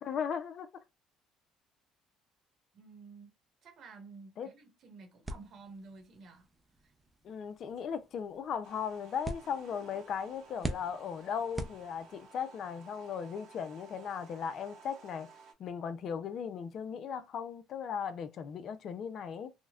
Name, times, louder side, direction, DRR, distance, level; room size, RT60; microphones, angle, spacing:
voice 1, 0.0-0.7 4.4-4.5 7.2-15.3 15.6-19.5, left 7 dB, 55° left, 0.4 m, -37 dB
voice 2, 2.7-3.3 3.6-6.5 6.8-6.9, right 4 dB, 60° right, 1.2 m, -52 dB
sound 1, 5.2-12.4, right 1 dB, 10° right, 0.5 m, -45 dB
sound 2, 8.6-15.5, right 4 dB, 80° right, 1.2 m, -56 dB
3.8 x 2.1 x 2.3 m
supercardioid pair, 85°, 0 cm